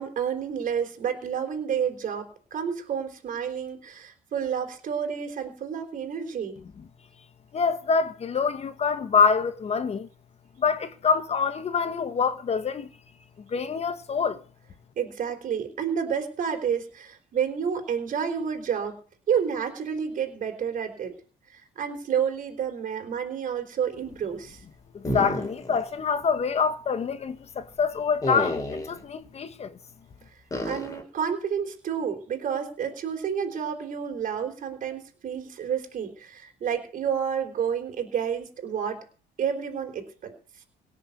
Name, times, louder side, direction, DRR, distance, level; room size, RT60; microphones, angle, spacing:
voice 1, 0.0-6.6 15.0-19.0 19.3-21.1 21.5-24.6 30.6-39.0 39.4-40.3, right 7 dB, 50° right, 4.0 m, -30 dB
voice 2, 7.5-10.1 10.6-12.9 13.4-14.4 24.9-29.8, left 5 dB, 40° left, 1.5 m, -26 dB
sound 1, 25.0-25.9 26.2-26.3 28.2-29.0 30.5-31.0, left 1 dB, 20° left, 4.5 m, -30 dB
18.0 x 6.7 x 8.3 m
cardioid pair, 110°, 17 cm